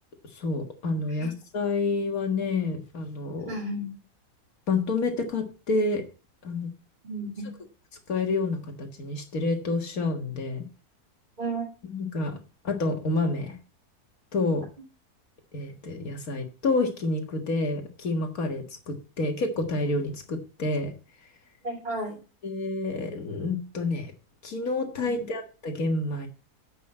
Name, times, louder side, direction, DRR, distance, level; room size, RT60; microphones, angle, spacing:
voice 1, 0.3-3.5 4.7-6.0 6.4-6.7 8.1-10.6 11.9-12.4 12.6-13.6 14.3-14.7 15.5-20.9 22.4-24.1 24.4-26.3, left 3 dB, 65° left, 4 dB, 2.1 m, -28 dB
voice 2, 3.5-3.9 7.0-7.5 11.4-11.7 21.6-22.2 25.0-25.3, right 2 dB, 30° right, -3 dB, 2.5 m, -33 dB
8.2 x 5.9 x 7.7 m, 0.35 s
omnidirectional pair, 1.7 m